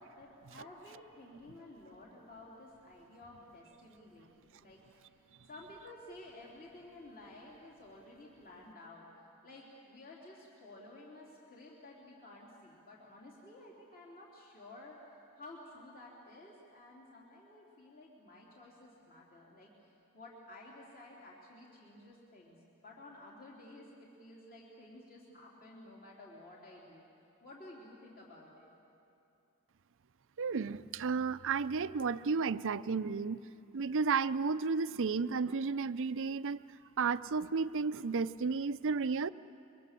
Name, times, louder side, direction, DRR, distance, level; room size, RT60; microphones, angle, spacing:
voice 1, 0.0-9.1 9.4-15.0 15.4-27.0 27.4-28.7, left 2 dB, 40° left, -4 dB, 3.5 m, -53 dB
voice 2, 30.4-33.4 33.7-36.6 37.0-39.3, right 5 dB, 60° right, 14 dB, 0.6 m, -32 dB
27.5 x 24.0 x 7.6 m, 2.6 s
head